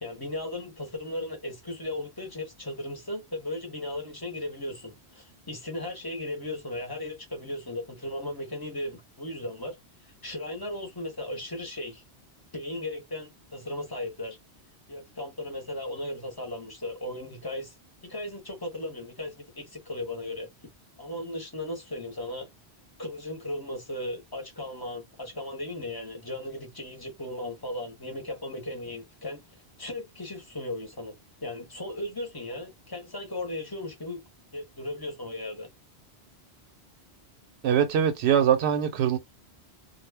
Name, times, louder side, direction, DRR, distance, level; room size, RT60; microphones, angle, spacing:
voice 1, 0.0-9.8 10.2-12.0 12.5-14.4 14.9-17.7 18.0-20.5 21.0-22.5 23.0-29.4 29.8-31.1 31.4-34.2 34.5-35.7, left 1 dB, 25° left, 0.7 m, -36 dB
voice 2, 37.6-39.2, right 9 dB, 80° right, 0.8 m, -22 dB
2.2 x 2.1 x 3.3 m
omnidirectional pair, 1.1 m